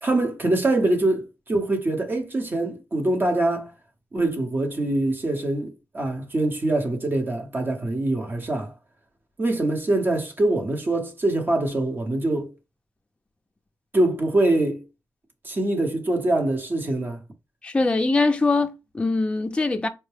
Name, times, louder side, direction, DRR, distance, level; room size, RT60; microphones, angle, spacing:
voice 1, 0.0-3.7 4.1-8.7 9.4-12.5 13.9-14.8 15.4-17.2, right 2 dB, 30° right, 0.9 m, -24 dB
voice 2, 17.6-19.9, left 3 dB, 15° left, 0.5 m, -22 dB
4.4 x 2.1 x 3.2 m
wide cardioid pair, 150°, 6 cm